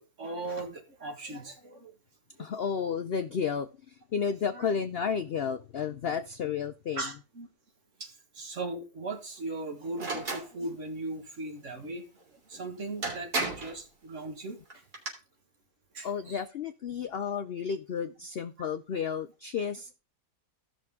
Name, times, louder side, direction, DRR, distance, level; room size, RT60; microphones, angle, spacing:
voice 1, 0.0-1.9 2.4-2.6 4.5-4.7 7.0-7.5 8.0-14.8 15.9-16.4 18.6-18.7, right 2 dB, 50° right, 1.9 m, -39 dB
voice 2, 2.4-7.0 16.0-19.9, left 6 dB, 80° left, 0.5 m, -32 dB
sound 1, 10.0-10.5 12.5-12.6 13.0-13.8 14.7-15.1, right 2 dB, 70° right, 3.3 m, -32 dB
15.0 x 6.1 x 3.6 m
omnidirectional pair, 1.7 m